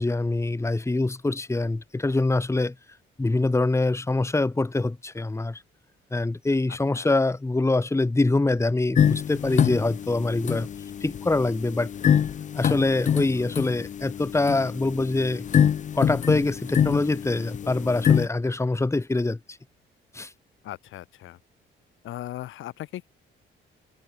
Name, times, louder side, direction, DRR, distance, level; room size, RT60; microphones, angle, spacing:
voice 1, 0.0-2.7 3.2-5.6 6.1-10.7 11.0-11.9 12.5-15.4 15.9-19.4 20.1-20.3, left 2 dB, 15° left, 1.7 m, -24 dB
voice 2, 6.7-7.2 13.1-13.5 20.6-21.4 22.0-23.1, left 14 dB, 80° left, 3.7 m, -39 dB
sound 1, 9.0-18.3, left 8 dB, 40° left, 0.5 m, -25 dB
open air
cardioid pair, 90°, 20 cm